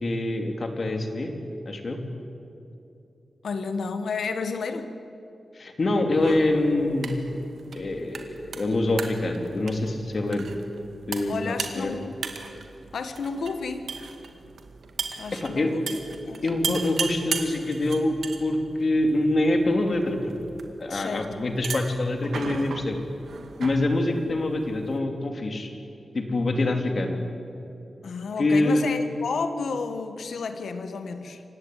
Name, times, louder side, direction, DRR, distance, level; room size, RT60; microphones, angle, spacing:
voice 1, 0.0-1.3 1.6-2.0 5.5-7.1 7.7-10.5 11.1-12.0 15.4-15.7 16.4-20.3 20.8-23.0 23.6-25.7 26.1-27.2 28.4-29.0, left 2 dB, 45° left, 5 dB, 3.0 m, -25 dB
voice 2, 3.4-4.9 11.3-12.2 12.9-13.9 15.2-16.0 16.2-16.4 20.9-21.3 28.0-31.4, left 4 dB, 85° left, 8 dB, 1.5 m, -31 dB
sound 1, 6.1-25.0, right 5 dB, 85° right, 2.1 m, -38 dB
27.5 x 16.0 x 9.4 m, 2.7 s
wide cardioid pair, 120°, 0 cm